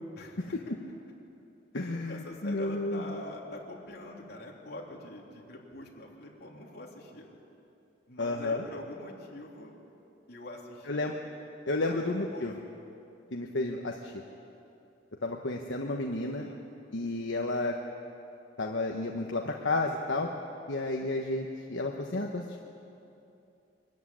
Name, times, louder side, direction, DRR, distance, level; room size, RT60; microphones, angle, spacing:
voice 1, 0.2-0.6 1.7-7.3 8.1-9.7 10.3-11.1 11.9-12.6 16.4-16.6, left 1 dB, 55° left, -2 dB, 3.3 m, -45 dB
voice 2, 1.7-3.2 8.2-8.6 10.8-11.2 11.7-12.5 13.3-14.1 15.2-16.5 16.9-17.8 18.6-20.3 20.7-22.6, left 2 dB, 75° left, 1 dB, 1.2 m, -31 dB
24.0 x 14.0 x 9.9 m, 2.8 s
head